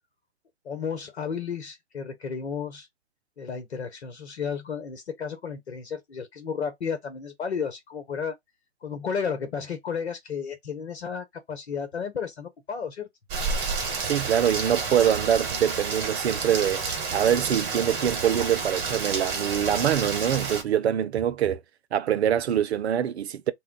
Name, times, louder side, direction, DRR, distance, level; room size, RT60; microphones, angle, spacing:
voice 1, 0.6-2.9 3.4-8.3 8.8-13.1, left 6 dB, 80° left, 0.9 m, -33 dB
Rain, 13.3-20.6, right 4 dB, 30° right, 1.2 m, -30 dB
voice 2, 14.1-16.8 17.1-21.6 21.9-23.5, right 10 dB, 80° right, 0.5 m, -24 dB
2.2 x 2.2 x 3.7 m
hypercardioid pair, 120°, 32 cm